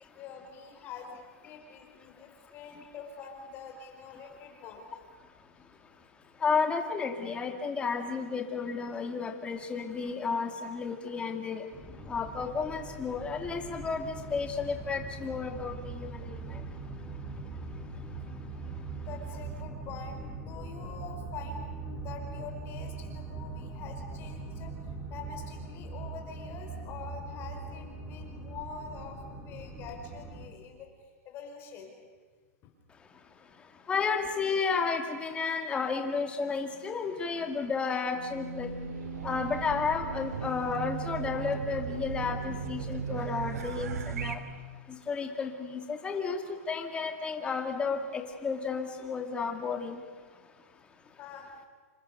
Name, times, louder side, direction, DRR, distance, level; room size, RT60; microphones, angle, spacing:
voice 1, 0.1-4.9 18.9-31.9 32.6-32.7 51.2-51.5, left 5 dB, 30° left, 3 dB, 5.1 m, -45 dB
voice 2, 5.4-5.9 6.3-11.7 12.0-18.2 18.6-18.8 32.9-38.7 39.2-44.4 44.9-50.5, left 5 dB, 15° left, 5 dB, 2.4 m, -33 dB
sound 1, 11.7-30.5, right 3 dB, 5° right, 4.0 m, -41 dB
Race car auto racing / Alarm, 38.1-44.4, right 6 dB, 80° right, 2.4 m, -36 dB
28.0 x 26.0 x 6.9 m, 1.5 s
supercardioid pair, 155°, 8 cm